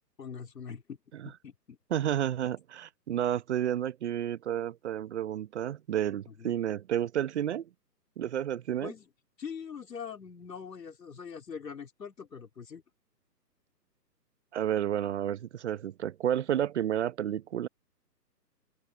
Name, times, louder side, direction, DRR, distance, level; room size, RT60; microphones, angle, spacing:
voice 1, 0.2-1.0 1.2-1.8 6.3-6.6 8.8-9.1 9.4-12.8, left 6 dB, 75° left, 4.0 m, -43 dB
voice 2, 1.9-7.6 8.2-8.9 14.5-17.7, right 10 dB, 45° right, 1.1 m, -31 dB
open air
hypercardioid pair, 140°, 50 cm